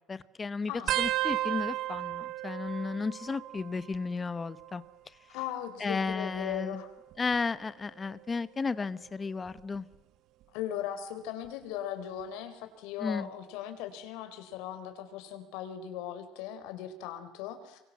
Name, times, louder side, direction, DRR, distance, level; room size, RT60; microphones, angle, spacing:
voice 1, 0.1-0.7 1.0-4.8 5.8-6.8 7.2-9.8 13.0-13.3, left 4 dB, 15° left, 16 dB, 0.9 m, -33 dB
voice 2, 0.7-1.0 5.3-6.9 10.5-17.8, left 10 dB, 90° left, 8 dB, 4.0 m, -38 dB
sound 1, 0.9-4.1 4.3-4.9 5.9-7.4 8.0-8.4 9.6-9.9 11.4-11.5, right 15 dB, 55° right, 0.9 m, -35 dB
28.5 x 24.0 x 7.5 m, 0.93 s
cardioid pair, 165°, 0 cm